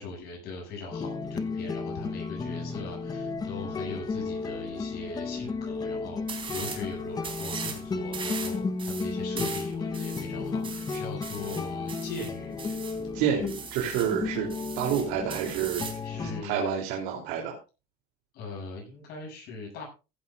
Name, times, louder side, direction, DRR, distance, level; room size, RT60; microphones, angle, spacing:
voice 1, 0.0-12.8 16.0-16.8 18.3-19.8, left 3 dB, 60° left, -1 dB, 7.7 m, -40 dB
sound 1, 0.9-16.4, left 4 dB, 20° left, 1.0 m, -34 dB
sound 2, 6.3-6.8 7.2-7.8 8.1-13.0 13.5-14.2 14.5-16.0, right 6 dB, 30° right, 3.7 m, -39 dB
voice 2, 13.1-14.5 14.7-15.8 16.1-17.5, right 8 dB, 80° right, 0 dB, 3.3 m, -29 dB
15.5 x 14.0 x 2.5 m, 0.30 s
cardioid pair, 135°, 18 cm